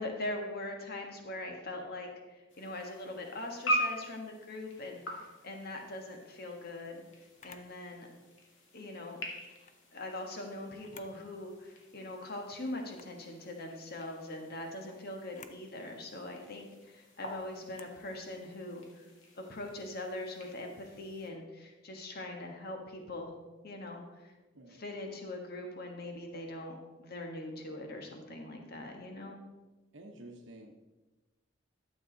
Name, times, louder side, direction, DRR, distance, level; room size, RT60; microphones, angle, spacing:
voice 1, 0.0-7.0 7.4-8.1 8.7-9.2 9.9-19.0 19.3-23.3 23.6-24.3 24.7-29.4, left 2 dB, 55° left, 2 dB, 1.4 m, -42 dB
sound 1, 2.5-21.3, equal, 70° left, 1.9 m, -43 dB
Camera, 7.4-7.7 9.4-9.8 10.7-11.2 11.6-11.7 12.8-13.2 15.2-15.6 17.7-18.0, left 6 dB, 40° left, 0.6 m, -54 dB
voice 2, 29.9-30.7, right 1 dB, 70° right, 1 dB, 1.0 m, -50 dB
12.0 x 7.3 x 3.9 m, 1.1 s
head